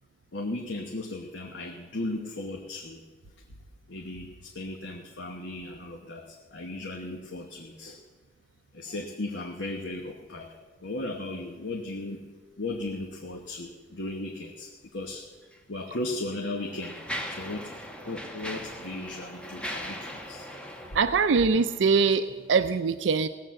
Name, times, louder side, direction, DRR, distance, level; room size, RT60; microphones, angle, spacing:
voice 1, 0.3-3.0 3.9-8.0 8.7-10.5 10.8-12.2 12.6-15.3 15.7-17.0 17.3-17.7 18.0-20.5, left 2 dB, 75° left, 1 dB, 1.2 m, -36 dB
Mechanisms, 15.4-15.6 16.3-22.1, equal, 5° left, 1.3 m, -39 dB
voice 2, 20.9-23.3, right 5 dB, 80° right, 10 dB, 0.5 m, -23 dB
17.5 x 7.7 x 7.5 m, 1.4 s
head